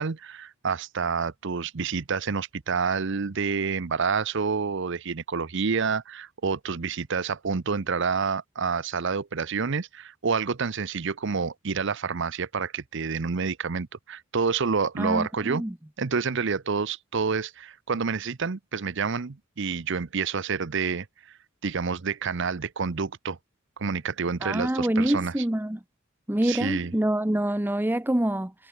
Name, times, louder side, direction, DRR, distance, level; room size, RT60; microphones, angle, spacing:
voice 1, 0.0-15.6 16.0-21.1 21.6-23.4 23.8-25.3 26.4-26.9, right 5 dB, 65° right, 0.8 m, -28 dB
voice 2, 15.0-15.7 24.4-25.8 26.3-28.5, right 1 dB, 10° right, 0.7 m, -26 dB
head